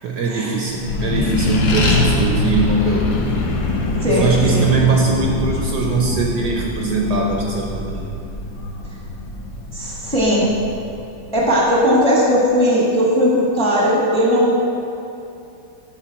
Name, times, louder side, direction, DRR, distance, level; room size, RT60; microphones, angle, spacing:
voice 1, 0.0-3.2 4.1-8.1, right 4 dB, 70° right, -1 dB, 1.1 m, -21 dB
Accelerating revving vroom, 0.7-11.6, left 2 dB, 75° left, 1.7 m, -23 dB
voice 2, 4.0-4.6 9.7-10.4 11.3-14.7, equal, 5° left, -5 dB, 1.2 m, -17 dB
7.5 x 6.3 x 4.5 m, 2.7 s
omnidirectional pair, 2.1 m